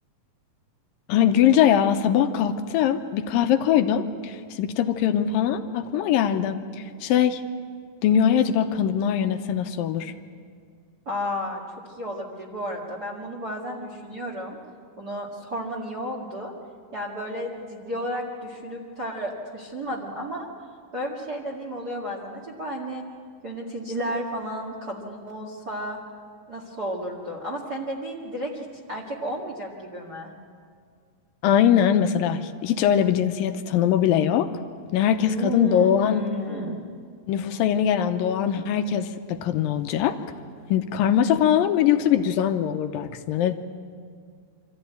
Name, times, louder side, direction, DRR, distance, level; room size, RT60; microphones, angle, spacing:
voice 1, 1.1-7.4 8.0-10.1 31.4-34.5 34.9-36.3 37.3-40.1 40.7-43.5, left 9 dB, 85° left, 8 dB, 2.6 m, -22 dB
voice 2, 11.1-14.6 15.0-16.5 16.9-20.5 20.9-23.0 23.4-26.0 26.5-30.3 35.2-36.8, equal, 35° right, -3 dB, 2.0 m, -32 dB
26.0 x 14.0 x 9.3 m, 2.1 s
omnidirectional pair, 4.1 m